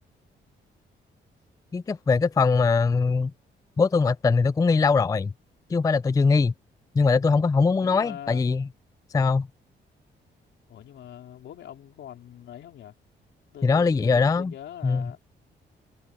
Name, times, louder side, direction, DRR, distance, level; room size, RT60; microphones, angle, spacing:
voice 1, 1.7-3.3 3.8-5.3 5.7-6.5 6.9-8.7 9.1-9.5 13.6-14.5 14.8-15.1, left 4 dB, 20° left, 0.4 m, -21 dB
voice 2, 7.8-8.4 10.7-12.9 13.5-15.2, left 10 dB, 80° left, 4.1 m, -42 dB
cardioid pair, 90°, 19 cm